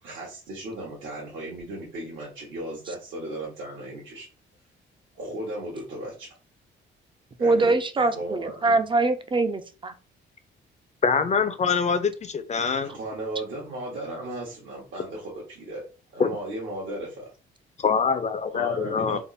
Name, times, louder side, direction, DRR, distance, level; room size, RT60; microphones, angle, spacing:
voice 1, 0.0-4.3 5.1-6.3 7.4-8.8 12.8-15.8 16.1-17.3 18.5-19.2, right 1 dB, 75° right, -4 dB, 1.4 m, -36 dB
voice 2, 7.4-9.9, right 3 dB, 25° right, 10 dB, 0.5 m, -23 dB
voice 3, 11.0-12.9 16.2-16.3 17.8-19.2, left 5 dB, 35° left, 11 dB, 0.6 m, -24 dB
3.5 x 2.1 x 4.0 m, 0.34 s
cardioid pair, 90°, 20 cm